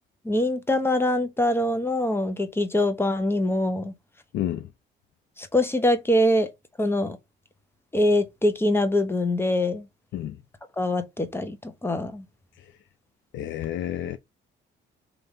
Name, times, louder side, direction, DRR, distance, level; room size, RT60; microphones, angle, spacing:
voice 1, 0.2-3.9 5.4-6.5 6.8-7.2 7.9-9.9 10.8-12.2, left 1 dB, 10° left, 0.8 m, -24 dB
voice 2, 4.3-4.7 10.1-10.4 13.3-14.2, left 11 dB, 75° left, 0.4 m, -30 dB
3.4 x 2.6 x 4.2 m
cardioid pair, 90°, 20 cm